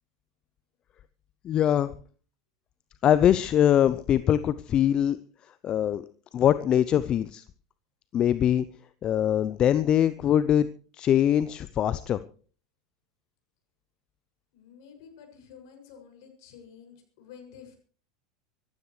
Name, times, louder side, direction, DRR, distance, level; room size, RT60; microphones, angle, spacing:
voice 1, 1.4-1.9 3.0-5.2 5.6-6.0 6.3-7.4 8.1-8.7 9.0-10.7 11.0-12.2, left 10 dB, 35° left, 15 dB, 0.6 m, -22 dB
voice 2, 14.5-17.8, left 7 dB, 65° left, 4 dB, 6.8 m, -50 dB
24.5 x 15.0 x 3.3 m, 0.41 s
hypercardioid pair, 85°, 2 cm